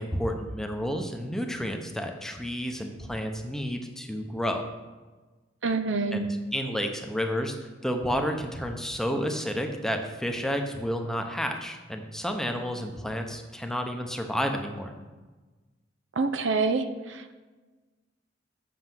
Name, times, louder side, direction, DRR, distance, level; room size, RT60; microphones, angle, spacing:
voice 1, 0.0-4.6 6.1-7.6 7.8-14.9, equal, 5° left, 4 dB, 0.8 m, -31 dB
voice 2, 5.6-6.2 16.2-17.4, right 4 dB, 90° right, 8 dB, 0.7 m, -27 dB
7.7 x 6.4 x 6.0 m, 1.3 s
head